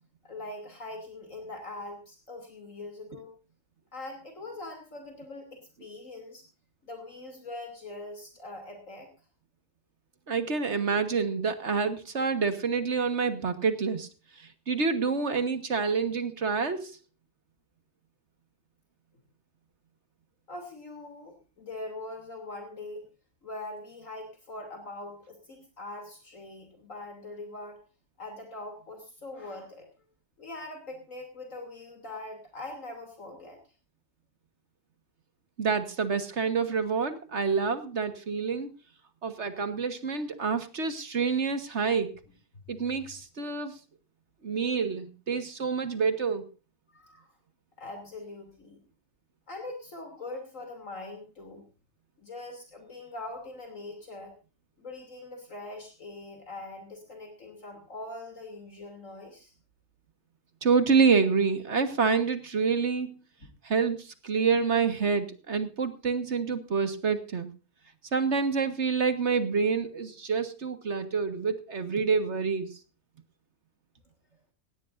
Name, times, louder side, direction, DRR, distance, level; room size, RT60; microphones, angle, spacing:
voice 1, 0.2-3.3 3.9-6.4 6.8-9.1 20.5-23.1 23.4-27.8 28.2-29.9 30.4-33.6 46.9-47.3 47.8-48.8 49.5-51.6 52.2-54.3 54.8-59.5, left 2 dB, 60° left, 4 dB, 3.3 m, -42 dB
voice 2, 10.3-14.1 14.4-17.0 35.6-38.7 39.2-42.1 42.7-43.8 44.4-46.4 60.6-63.2 63.6-67.5 68.1-72.7, right 5 dB, 50° right, 10 dB, 1.7 m, -27 dB
18.5 x 16.5 x 2.6 m, 0.32 s
omnidirectional pair, 1.6 m